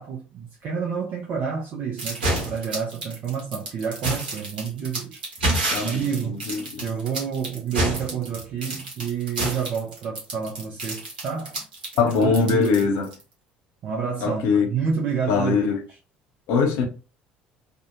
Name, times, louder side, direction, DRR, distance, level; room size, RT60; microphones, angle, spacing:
voice 1, 0.0-5.2 5.8-6.4 6.8-11.6 12.1-12.9 13.8-15.7, right 7 dB, 45° right, 0.5 m, -29 dB
sound 1, 2.0-13.2, right 1 dB, 75° right, 0.8 m, -28 dB
voice 2, 5.7-6.9 12.0-13.1 14.2-14.7 15.3-15.8 16.5-16.9, left 5 dB, 55° left, 0.5 m, -22 dB
2.6 x 2.1 x 2.6 m
figure-of-eight pair, 60°, 5 cm